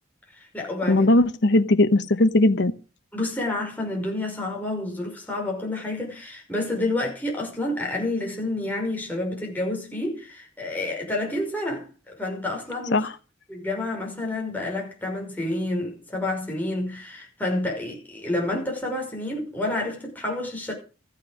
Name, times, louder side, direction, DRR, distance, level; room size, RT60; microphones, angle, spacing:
voice 1, 0.3-1.1 3.1-13.1 13.5-20.7, left 2 dB, 10° left, 5.5 m, -29 dB
voice 2, 0.9-2.7 12.9-13.1, left 2 dB, 60° left, 1.0 m, -19 dB
14.5 x 9.1 x 6.5 m
head